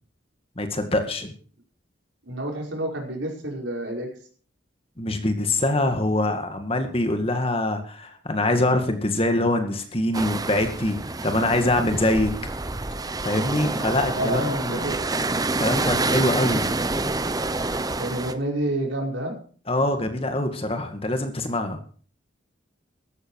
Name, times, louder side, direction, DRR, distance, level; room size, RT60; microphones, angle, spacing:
voice 1, 0.6-1.3 5.0-11.0 11.2-12.3 13.2-14.9 15.6-16.6 19.7-21.8, left 1 dB, 30° left, 6 dB, 2.1 m, -24 dB
voice 2, 2.2-4.1 14.1-15.0 18.0-19.4, right 1 dB, 75° right, 0 dB, 5.3 m, -29 dB
sound 1, 10.1-18.3, right 2 dB, 20° right, 0.9 m, -27 dB
15.0 x 13.0 x 4.8 m, 0.43 s
head